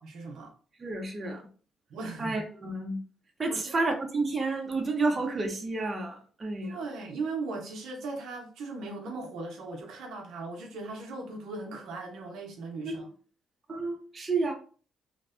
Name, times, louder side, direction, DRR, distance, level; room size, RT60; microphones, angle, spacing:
voice 1, 0.0-0.5 1.9-2.4 3.5-3.7 6.6-13.1, right 3 dB, 80° right, 0.6 m, -38 dB
voice 2, 0.8-1.4 2.2-3.0 3.4-6.8 12.8-13.1 13.7-14.5, right 3 dB, 30° right, 0.5 m, -30 dB
2.5 x 2.1 x 2.4 m
cardioid pair, 90°, 0 cm